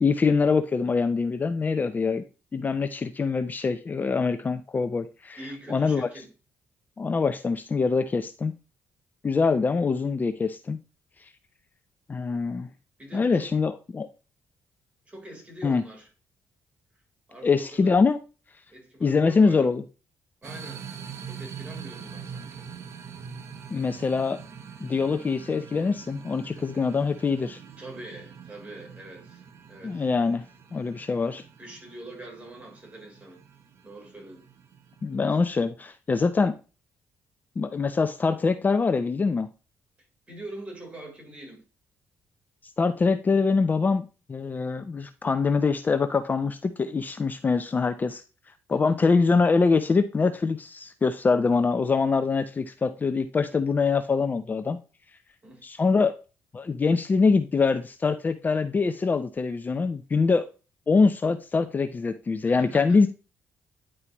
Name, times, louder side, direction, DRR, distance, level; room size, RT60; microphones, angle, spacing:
voice 1, 0.0-2.2 2.5-5.4 5.7-6.1 7.0-8.5 9.2-10.8 12.1-12.7 13.1-14.1 15.6-15.8 17.4-18.2 19.0-19.8 23.7-24.4 24.8-27.6 29.8-30.4 30.7-31.4 35.0-36.5 37.6-39.5 42.8-48.2 48.7-54.8 55.6-56.1 56.5-60.5 60.9-63.1, left 4 dB, 35° left, 0.6 m, -24 dB
voice 2, 5.4-6.3 13.0-13.5 15.1-16.1 17.3-18.0 18.7-19.7 20.4-20.9 21.3-22.7 26.4-26.8 27.8-29.4 29.7-30.1 31.6-33.4 33.8-34.4 35.3-35.4 40.3-41.6 48.7-49.3 55.4-55.7 62.4-63.0, right 1 dB, 25° right, 3.7 m, -44 dB
sound 1, 20.4-35.5, right 7 dB, 65° right, 1.0 m, -44 dB
9.8 x 4.7 x 3.0 m
cardioid pair, 85°, 6 cm